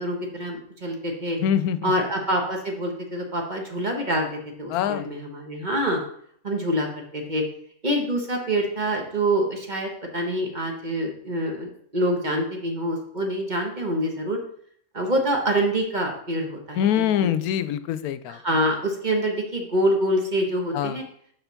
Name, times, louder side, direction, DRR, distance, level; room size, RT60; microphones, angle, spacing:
voice 1, 0.0-1.4 1.8-4.3 4.6-6.0 6.4-7.4 7.8-14.4 14.9-17.3 18.3-21.0, right 1 dB, 35° right, 2 dB, 1.4 m, -26 dB
voice 2, 1.4-1.9 4.7-5.1 16.8-18.4 20.7-21.0, left 9 dB, 90° left, 13 dB, 1.1 m, -24 dB
6.8 x 5.6 x 5.7 m, 0.64 s
omnidirectional pair, 1.5 m